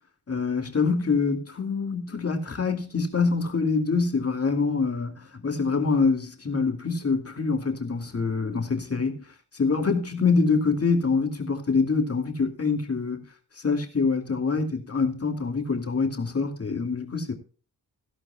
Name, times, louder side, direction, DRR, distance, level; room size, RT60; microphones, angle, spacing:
voice 1, 0.3-9.2 9.5-13.2 13.6-17.3, left 4 dB, 40° left, 2.5 m, -25 dB
16.5 x 11.5 x 2.3 m
cardioid pair, 90°, 37 cm